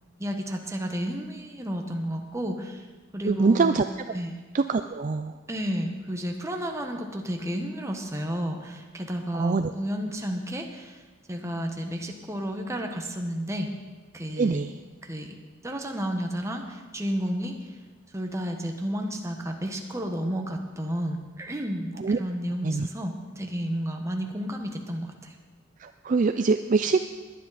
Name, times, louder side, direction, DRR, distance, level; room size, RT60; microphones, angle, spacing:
voice 1, 0.2-2.9 3.1-3.8 4.1-4.4 5.5-11.0 11.3-13.7 14.1-14.6 15.0-15.3 15.6-17.7 18.1-25.4, equal, 15° right, 3 dB, 1.2 m, -32 dB
voice 2, 3.2-3.8 4.5-5.3 9.3-9.7 14.4-14.7 22.0-22.2 22.6-22.9 25.8-27.0, right 4 dB, 40° right, 9 dB, 0.4 m, -24 dB
20.5 x 10.0 x 4.1 m, 1.3 s
head